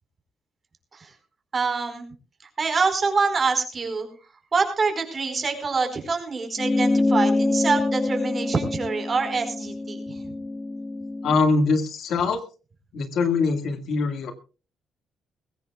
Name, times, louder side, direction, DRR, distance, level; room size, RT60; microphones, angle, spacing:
voice 1, 1.5-2.1 2.6-4.1 4.5-10.2, right 4 dB, 35° right, 6 dB, 4.6 m, -25 dB
sound 1, 6.6-11.4, left 2 dB, 30° left, 1.2 m, -25 dB
voice 2, 11.2-12.4 12.9-14.3, left 4 dB, 70° left, 8 dB, 1.9 m, -23 dB
21.5 x 16.0 x 2.3 m, 0.34 s
cardioid pair, 90°, 0 cm